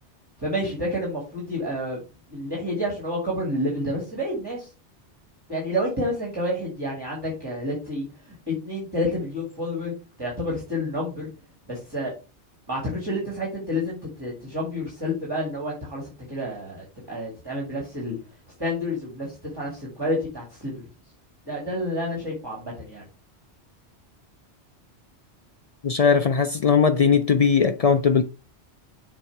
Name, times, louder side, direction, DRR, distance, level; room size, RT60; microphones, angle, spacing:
voice 1, 0.4-2.0 2.3-4.7 5.5-9.9 10.2-11.3 11.7-12.1 12.7-18.2 18.6-20.8 21.5-23.0, left 1 dB, 20° right, 2.2 m, -29 dB
voice 2, 25.8-28.2, left 6 dB, 75° left, 0.3 m, -19 dB
7.1 x 3.1 x 4.5 m
omnidirectional pair, 1.2 m